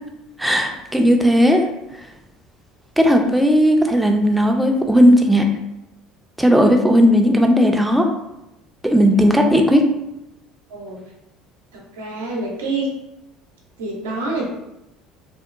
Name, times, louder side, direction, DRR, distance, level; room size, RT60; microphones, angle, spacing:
voice 1, 0.4-1.7 3.0-5.5 6.4-8.1 8.8-9.8, equal, 5° right, 3 dB, 0.4 m, -15 dB
voice 2, 10.7-11.0 11.9-12.9 13.8-14.5, right 3 dB, 85° right, -2 dB, 0.6 m, -26 dB
2.7 x 2.1 x 2.4 m, 0.89 s
hypercardioid pair, 70°, 0 cm